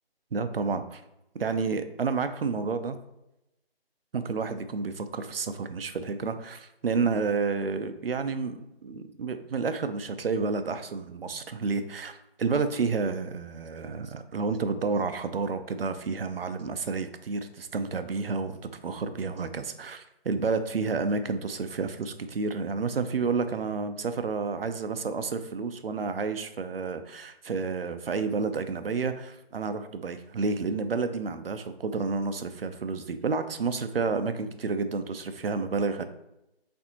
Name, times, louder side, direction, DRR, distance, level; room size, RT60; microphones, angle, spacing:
voice 1, 0.3-1.0 1.3-3.0 4.1-36.0, right 4 dB, 65° right, 10 dB, 0.5 m, -30 dB
4.3 x 3.4 x 2.9 m, 0.88 s
figure-of-eight pair, 170°, 31 cm